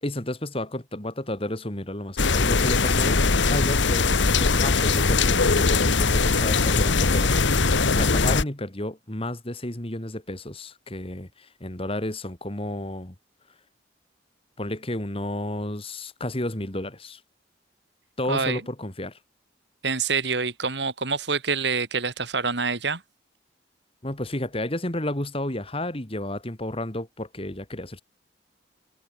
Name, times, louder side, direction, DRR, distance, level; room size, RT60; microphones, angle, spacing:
voice 1, 0.0-3.2 3.5-13.1 14.6-17.2 18.2-19.2 24.0-28.0, left 1 dB, 30° left, 2.8 m, -32 dB
sound 1, 2.2-8.4, left 4 dB, 80° left, 1.4 m, -21 dB
voice 2, 18.3-18.6 19.8-23.0, right 4 dB, 70° right, 3.3 m, -26 dB
head